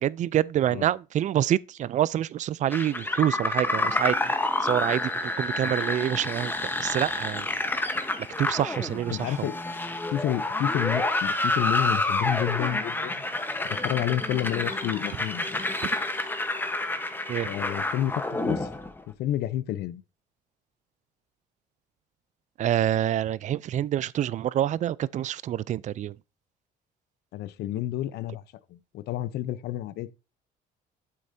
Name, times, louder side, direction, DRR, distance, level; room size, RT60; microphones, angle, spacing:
voice 1, 0.0-4.3 4.6-7.5 8.4-9.5 17.3-17.5 22.6-26.1, right 11 dB, 45° right, 0.4 m, -27 dB
sound 1, 2.7-19.0, left 2 dB, 10° left, 1.0 m, -29 dB
voice 2, 9.1-9.6 10.1-13.2 13.6-15.6 17.4-18.7 19.1-20.0 27.3-28.4 28.7-30.1, left 13 dB, 75° left, 0.7 m, -30 dB
8.4 x 7.7 x 2.7 m
cardioid pair, 110°, 17 cm